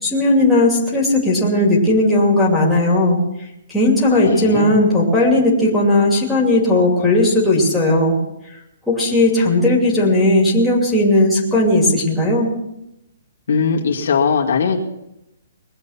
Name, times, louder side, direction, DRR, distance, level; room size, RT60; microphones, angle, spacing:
voice 1, 0.0-3.2 3.7-8.1 8.9-12.5, left 1 dB, ahead, -7 dB, 2.7 m, -16 dB
voice 2, 4.1-4.8 13.5-14.8, left 6 dB, 65° left, -1 dB, 2.2 m, -19 dB
21.0 x 8.1 x 5.8 m, 0.86 s
hypercardioid pair, 170°, 0 cm